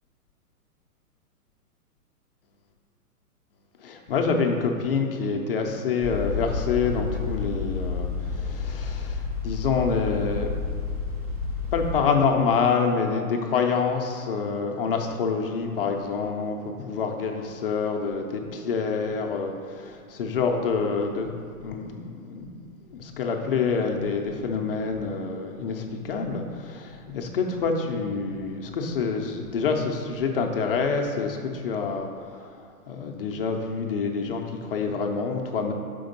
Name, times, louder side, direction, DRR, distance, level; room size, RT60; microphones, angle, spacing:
voice 1, 3.8-10.5 11.7-21.3 21.6-35.7, left 5 dB, 40° left, 2 dB, 0.5 m, -27 dB
sound 1, 6.0-12.0, left 4 dB, 25° right, 0.5 m, -30 dB
5.1 x 3.4 x 5.3 m, 2.2 s
hypercardioid pair, 135°, 46 cm